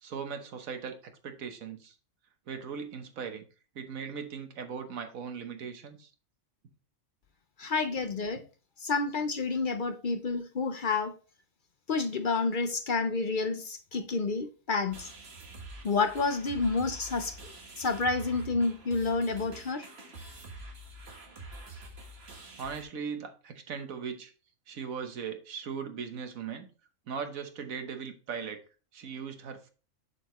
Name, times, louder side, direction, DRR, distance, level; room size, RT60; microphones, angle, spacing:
voice 1, 0.0-1.9 2.5-3.5 3.7-6.1 20.1-20.2 22.6-24.3 24.7-26.7 27.1-28.6 28.9-29.7, right 6 dB, 90° right, 1.4 m, -39 dB
voice 2, 7.6-8.4 8.8-11.1 11.9-15.1 15.8-17.4 17.8-19.9, left 4 dB, 50° left, 0.7 m, -29 dB
sound 1, 14.9-22.8, right 3 dB, 50° right, 1.7 m, -46 dB
7.1 x 6.7 x 3.0 m
omnidirectional pair, 1.4 m